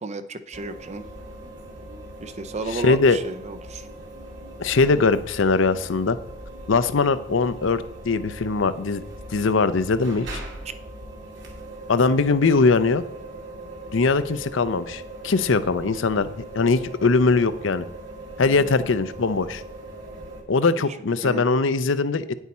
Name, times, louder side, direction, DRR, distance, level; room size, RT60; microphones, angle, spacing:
voice 1, 0.0-1.0 2.2-3.9 10.7-10.8 18.5-18.8 21.2-21.4, right 3 dB, 35° right, 11 dB, 0.6 m, -33 dB
sound 1, 0.5-20.4, right 1 dB, 65° right, 2.2 m, -40 dB
voice 2, 2.7-3.2 4.6-6.2 6.7-9.0 9.3-10.3 11.9-13.0 13.9-17.9 18.4-19.6 20.5-22.3, left 4 dB, 70° left, 14 dB, 0.6 m, -21 dB
9.6 x 8.2 x 4.2 m, 0.75 s
head